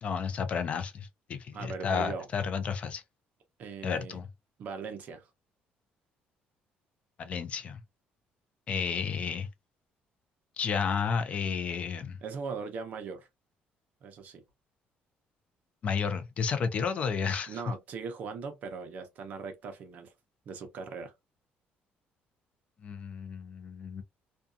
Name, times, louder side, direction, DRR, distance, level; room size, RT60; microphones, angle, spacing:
voice 1, 0.0-3.0 3.8-4.3 7.2-7.8 8.7-9.5 10.6-12.2 15.8-17.6 22.8-24.0, left 6 dB, 40° left, 0.4 m, -32 dB
voice 2, 1.5-2.3 3.6-4.2 4.6-5.3 12.2-13.3 14.0-14.4 17.5-20.1 20.5-21.1, right 5 dB, 50° right, 0.7 m, -39 dB
2.6 x 2.3 x 2.4 m
cardioid pair, 165°, 3 cm